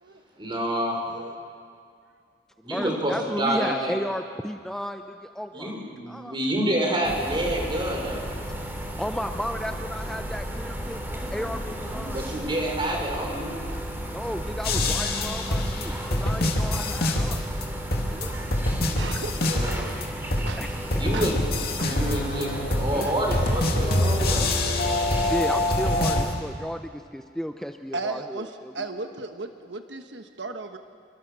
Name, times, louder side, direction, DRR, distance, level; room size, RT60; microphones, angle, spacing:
voice 1, 0.4-1.0 2.6-4.0 5.5-8.2 12.1-13.5 19.3-19.9 21.0-21.4 21.8-24.5, right 1 dB, 30° right, 1 dB, 5.5 m, -28 dB
voice 2, 2.6-5.7 6.1-6.3 9.0-11.0 11.3-12.2 14.1-17.4 18.1-18.5 20.6-21.0 22.9-23.1 25.2-28.9, equal, 5° left, 6 dB, 0.7 m, -33 dB
sound 1, 7.0-26.4, equal, 15° right, 3.1 m, -34 dB
sound 2, 14.6-17.6 17.9-20.0 20.3-26.2, left 1 dB, 60° left, 2.7 m, -25 dB
voice 3, 18.2-18.5 18.9-19.7 20.4-20.6 21.1-21.3 21.8-21.9 22.7-23.1 27.9-30.8, right 3 dB, 85° right, 6 dB, 1.3 m, -36 dB
28.0 x 24.0 x 6.8 m, 2.2 s
head